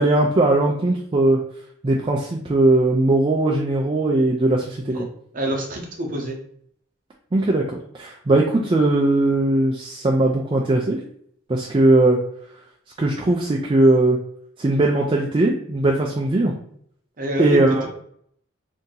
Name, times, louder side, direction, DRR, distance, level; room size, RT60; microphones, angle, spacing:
voice 1, 0.0-1.4 1.8-5.1 7.3-11.0 11.5-12.2 13.0-14.2 14.6-16.5 17.4-17.9, right 2 dB, 25° right, -1 dB, 0.3 m, -19 dB
voice 2, 5.3-6.3 17.2-17.6, equal, 40° right, 0 dB, 0.8 m, -26 dB
2.7 x 2.7 x 3.7 m, 0.65 s
head